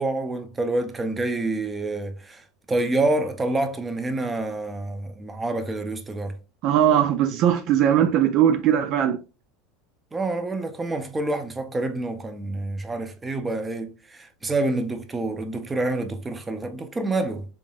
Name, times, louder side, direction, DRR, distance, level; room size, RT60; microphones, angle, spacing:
voice 1, 0.0-2.4 2.7-6.4 10.1-17.4, right 2 dB, 15° right, 0.7 m, -27 dB
voice 2, 6.6-9.2, right 10 dB, 55° right, 0.4 m, -20 dB
3.6 x 3.6 x 2.4 m
supercardioid pair, 115°, 0 cm